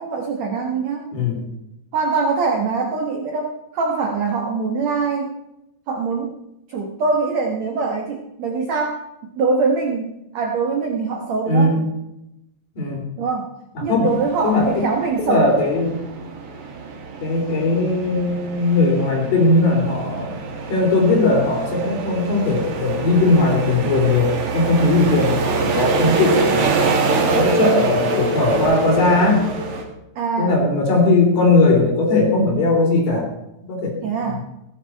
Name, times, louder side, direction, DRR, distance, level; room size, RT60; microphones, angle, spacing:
voice 1, 0.0-1.1 1.9-5.4 5.9-6.4 6.7-9.1 9.4-11.7 13.2-13.5 13.8-15.6 30.2-30.6 34.0-34.4, right 4 dB, 75° right, 1 dB, 1.6 m, -23 dB
voice 2, 1.1-1.4 11.5-11.8 12.7-13.0 13.7-14.1 14.4-14.8 15.3-15.9 17.2-20.4 20.7-26.8 27.3-29.5 30.4-33.3 33.7-34.0 34.3-34.4, left 2 dB, 50° left, -1 dB, 5.0 m, -18 dB
sound 1, 14.1-29.8, right 4 dB, 50° right, 2.6 m, -25 dB
17.0 x 10.5 x 4.5 m, 0.88 s
omnidirectional pair, 5.0 m